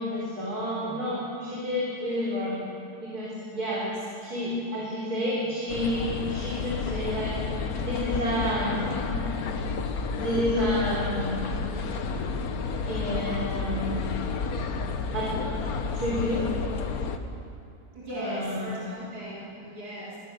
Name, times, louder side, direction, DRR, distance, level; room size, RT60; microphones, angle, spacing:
voice 1, 0.0-2.6 3.0-3.8 4.2-7.4 7.8-8.8 9.1-9.3 10.2-11.4 12.8-14.1 15.1-15.3 15.9-16.5 18.1-18.7, equal, 70° right, -6 dB, 4.3 m, -29 dB
sound 1, 5.7-17.2, left 4 dB, 70° left, 1.5 m, -31 dB
voice 2, 17.9-20.2, equal, 90° right, -8 dB, 4.1 m, -37 dB
22.0 x 18.0 x 6.8 m, 2.5 s
omnidirectional pair, 1.7 m